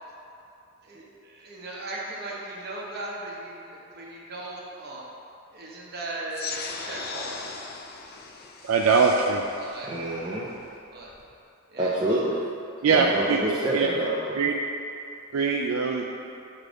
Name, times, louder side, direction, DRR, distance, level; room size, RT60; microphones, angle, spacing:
voice 1, 0.8-5.0 5.5-7.4 9.5-9.9 10.9-11.1 11.7-11.9, right 2 dB, 50° right, -3 dB, 1.0 m, -38 dB
sound 1, 6.3-11.3, left 4 dB, 45° left, 0.5 m, -39 dB
voice 2, 8.6-9.4 12.8-13.4 13.7-13.9 14.3-14.5 15.3-16.0, right 5 dB, 85° right, 1 dB, 0.4 m, -22 dB
voice 3, 9.8-10.5 11.8-12.4 12.9-14.4, right 1 dB, 20° right, -6 dB, 0.5 m, -27 dB
6.7 x 3.2 x 5.0 m, 2.6 s
head